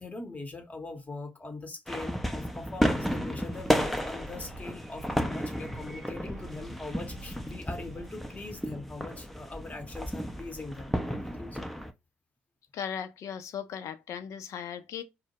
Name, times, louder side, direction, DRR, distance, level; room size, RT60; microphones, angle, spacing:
voice 1, 0.0-11.7, left 3 dB, 25° left, 0.8 m, -41 dB
sound 1, 1.9-11.9, equal, ahead, 0.5 m, -33 dB
sound 2, 2.8-8.1, right 5 dB, 60° right, 0.7 m, -51 dB
voice 2, 12.7-15.0, left 8 dB, 55° left, 0.5 m, -37 dB
2.1 x 2.0 x 2.9 m
hypercardioid pair, 50°, 6 cm